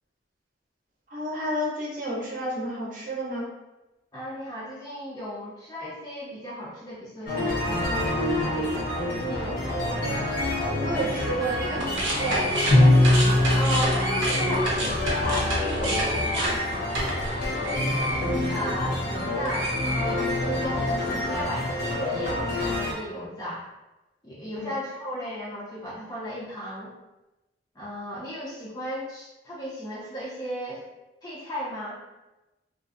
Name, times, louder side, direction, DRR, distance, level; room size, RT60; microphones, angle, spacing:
voice 1, 1.1-3.5 10.8-12.7 24.6-24.7, right 1 dB, 45° right, -4 dB, 0.7 m, -30 dB
voice 2, 4.1-8.9 9.2-10.3 13.5-16.6 17.3-18.0 18.5-23.6 24.2-26.9 27.8-30.8 31.2-32.0, equal, 20° left, -7 dB, 0.4 m, -35 dB
sound 1, 7.3-22.9, left 1 dB, 55° left, 0.7 m, -28 dB
sound 2, 11.7-19.1 19.4-20.6, right 1 dB, 85° right, 0.6 m, -30 dB
Bowed string instrument, 12.7-15.5, left 1 dB, 90° left, 0.7 m, -21 dB
2.5 x 2.3 x 2.4 m, 1.0 s
head